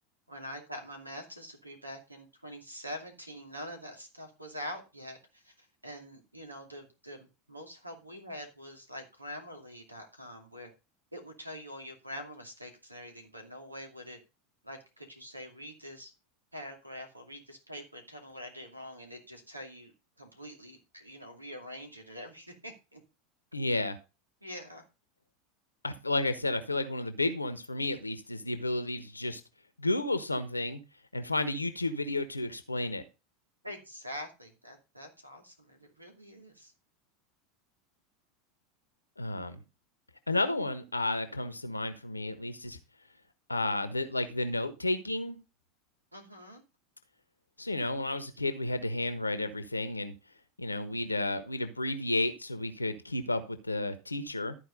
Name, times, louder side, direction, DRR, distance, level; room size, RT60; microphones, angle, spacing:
voice 1, 0.3-10.7 11.1-14.2 14.6-16.1 16.5-19.9 20.2-23.0 24.4-24.8 33.6-36.7 46.1-46.7, equal, 85° right, 2.5 m, -45 dB
voice 2, 23.5-24.0 25.8-29.4 29.8-30.8 31.1-33.0 39.2-39.6 40.3-42.8 43.5-45.4 47.6-50.1 50.6-54.6, left 2 dB, 85° left, 1.1 m, -32 dB
13.0 x 4.8 x 5.1 m
figure-of-eight pair, 85°, 0 cm